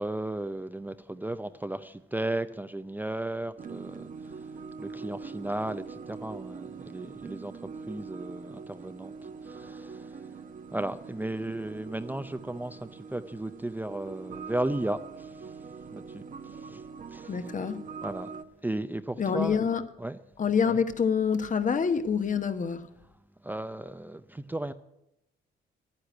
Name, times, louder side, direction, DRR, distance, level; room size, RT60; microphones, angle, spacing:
voice 1, 0.0-4.5 4.8-10.4 10.7-15.6 15.9-16.8 17.1-17.4 18.0-18.3 18.6-19.6 20.0-20.2 23.4-24.7, right 1 dB, 10° right, 0.6 m, -35 dB
sound 1, 3.6-18.4, right 5 dB, 45° right, 1.0 m, -43 dB
voice 2, 17.3-17.8 19.2-19.9 20.4-22.9, left 6 dB, 40° left, 1.2 m, -26 dB
10.5 x 9.8 x 9.2 m
cardioid pair, 90°, 20 cm